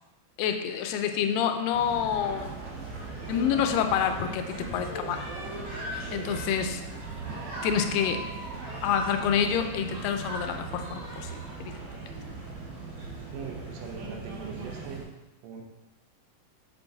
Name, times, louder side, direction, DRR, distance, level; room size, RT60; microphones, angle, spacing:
voice 1, 0.4-2.5 3.3-5.2 6.1-6.8 7.6-8.2 8.8-11.7, left 8 dB, 85° left, 7 dB, 2.2 m, -27 dB
sound 1, 0.7-12.6 13.4-13.5 13.8-15.0, right 1 dB, 60° right, 1.7 m, -45 dB
sound 2, 1.7-15.0, right 3 dB, 40° right, 2.5 m, -39 dB
voice 2, 13.3-15.1 15.4-15.6, right 6 dB, 85° right, 2 dB, 2.7 m, -41 dB
6.6 x 5.3 x 3.4 m, 1.0 s
omnidirectional pair, 4.0 m